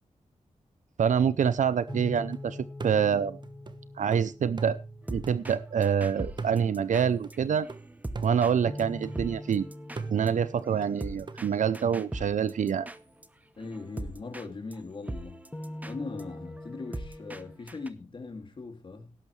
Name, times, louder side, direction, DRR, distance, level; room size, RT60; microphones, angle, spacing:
voice 1, 1.0-2.6 2.8-3.4 4.0-4.8 5.1-7.7 8.2-9.6 10.1-12.9, right 7 dB, 75° right, 0.6 m, -26 dB
sound 1, 1.9-6.0 8.7-12.9 15.5-17.6, left 1 dB, 15° left, 1.0 m, -44 dB
sound 2, 1.9-2.4 2.8-6.0 6.4-9.5 10.0-11.4, right 4 dB, 35° right, 1.0 m, -41 dB
sound 3, 5.1-5.6 5.8-8.5 8.8-8.9 9.1-13.3 13.6-14.5 14.7-14.8 15.1-17.4 17.7-17.9, right 1 dB, 10° right, 0.9 m, -40 dB
voice 2, 13.6-15.4 15.8-19.2, left 3 dB, 40° left, 2.6 m, -40 dB
18.0 x 11.0 x 3.2 m
wide cardioid pair, 170°, 13 cm